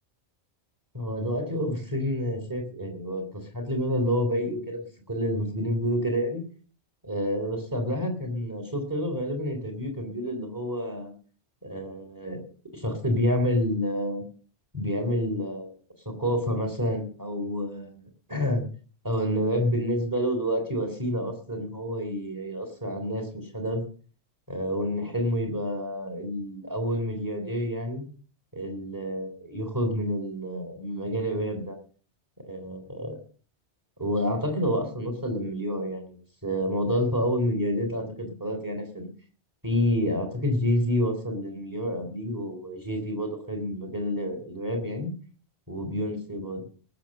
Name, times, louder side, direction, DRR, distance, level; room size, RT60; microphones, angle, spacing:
voice 1, 0.9-3.3 3.5-6.4 7.0-11.1 11.6-12.4 12.7-14.2 14.7-15.7 16.1-18.0 18.3-18.6 19.0-23.8 24.5-28.0 28.5-31.8 32.4-33.2 34.0-39.1 39.6-45.1 45.7-46.6, equal, 15° right, 3 dB, 3.7 m, -28 dB
18.5 x 7.7 x 6.6 m, 0.41 s
omnidirectional pair, 1.2 m